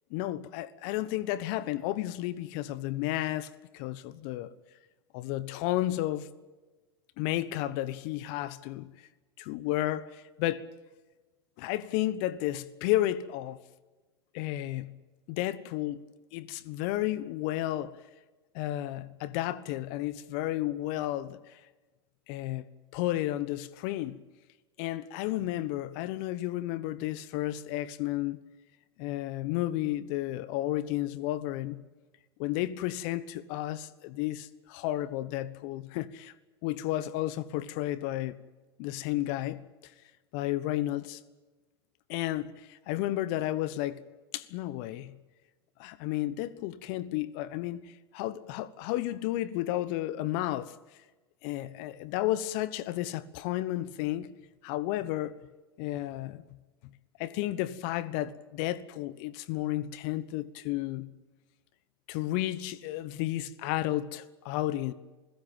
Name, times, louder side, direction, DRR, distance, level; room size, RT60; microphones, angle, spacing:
voice 1, 0.1-4.5 5.1-6.3 7.2-8.9 9.4-10.7 11.6-13.6 14.3-14.9 15.3-16.0 16.3-18.0 18.5-21.6 22.3-22.7 22.9-24.2 24.8-28.4 29.0-31.8 32.4-36.3 36.6-38.4 38.8-39.9 40.3-41.2 42.1-44.0 44.3-45.2 45.8-50.7 51.4-54.3 54.6-55.5 55.8-56.4 57.2-61.1 62.1-64.9, left 15 dB, 55° left, 1.2 m, -32 dB
28.0 x 16.0 x 9.0 m
hypercardioid pair, 95°, 13 cm